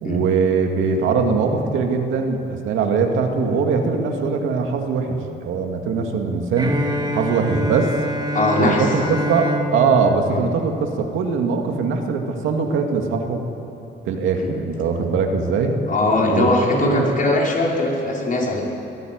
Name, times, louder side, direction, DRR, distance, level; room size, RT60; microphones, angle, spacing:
voice 1, 0.0-6.7 7.1-8.0 8.6-13.5 14.1-15.8 16.2-16.5 16.8-17.1, right 5 dB, 85° right, 3 dB, 2.3 m, -21 dB
Bowed string instrument, 6.6-11.4, right 1 dB, 20° right, 2.7 m, -27 dB
voice 2, 8.3-8.9 10.3-10.4 14.4-14.5 15.9-18.6, left 2 dB, 45° left, -2 dB, 5.4 m, -20 dB
22.0 x 14.0 x 9.5 m, 3.0 s
cardioid pair, 90°, 20 cm